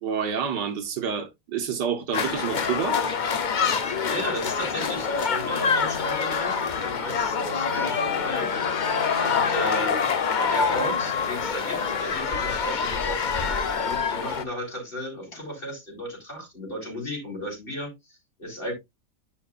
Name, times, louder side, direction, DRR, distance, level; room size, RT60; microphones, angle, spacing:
voice 1, 0.0-3.0, right 7 dB, 75° right, 1.7 m, -28 dB
sound 1, 2.1-14.4, left 6 dB, 90° left, 0.4 m, -26 dB
voice 2, 3.8-8.9 9.2-10.0 10.4-18.7, equal, 30° left, 4.3 m, -35 dB
sound 2, 5.4-12.0, equal, 55° left, 2.4 m, -43 dB
10.5 x 5.8 x 2.4 m
omnidirectional pair, 1.8 m